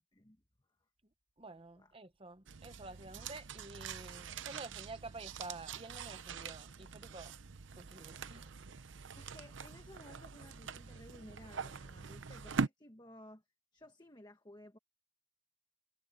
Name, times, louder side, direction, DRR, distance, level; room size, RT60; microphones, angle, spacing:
voice 1, 0.1-0.4 1.8-1.9 9.1-13.4 13.7-14.8, left 1 dB, 20° left, 1.3 m, -56 dB
voice 2, 1.4-7.3 7.7-8.5, right 2 dB, 30° right, 1.1 m, -50 dB
sound 1, 2.5-12.7, right 5 dB, 75° right, 0.8 m, -43 dB
head